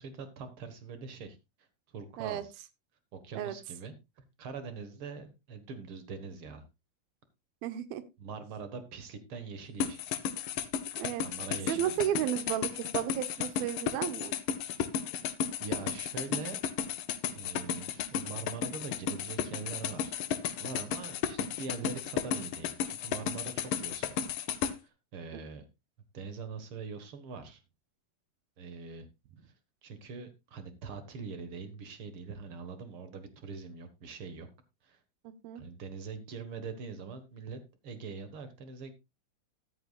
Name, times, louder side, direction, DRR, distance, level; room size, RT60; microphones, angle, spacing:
voice 1, 0.0-2.6 3.1-6.6 8.2-10.2 11.2-12.1 15.6-16.6 17.3-20.1 20.6-24.3 24.7-25.6 26.1-27.6 28.6-29.1 29.4-29.5 29.8-34.5 34.8-35.0 35.5-38.9, right 5 dB, 60° right, 10 dB, 1.5 m, -43 dB
voice 2, 7.6-8.0 11.0-11.2 11.7-14.3 25.3-25.4 35.4-35.6, right 11 dB, 80° right, 12 dB, 2.7 m, -33 dB
sound 1, 9.8-24.7, left 9 dB, 75° left, 2.4 m, -33 dB
13.5 x 11.5 x 2.4 m, 0.24 s
omnidirectional pair, 4.3 m